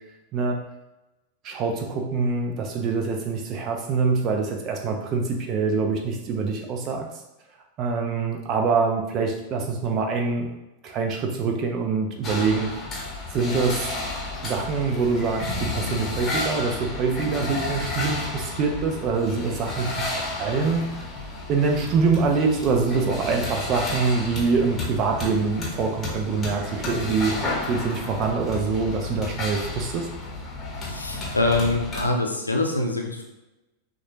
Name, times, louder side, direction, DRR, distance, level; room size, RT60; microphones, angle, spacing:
voice 1, 1.4-7.1 7.8-10.5 10.8-12.7 13.3-13.9 14.4-20.9 21.5-27.4 27.7-30.1, right 4 dB, 35° right, 2 dB, 0.8 m, -25 dB
sound 1, 12.2-32.0, left 2 dB, 20° left, 1.2 m, -32 dB
voice 2, 30.8-33.2, left 2 dB, 80° left, 2 dB, 0.6 m, -24 dB
6.2 x 2.6 x 3.0 m, 0.99 s
figure-of-eight pair, 90°, 0 cm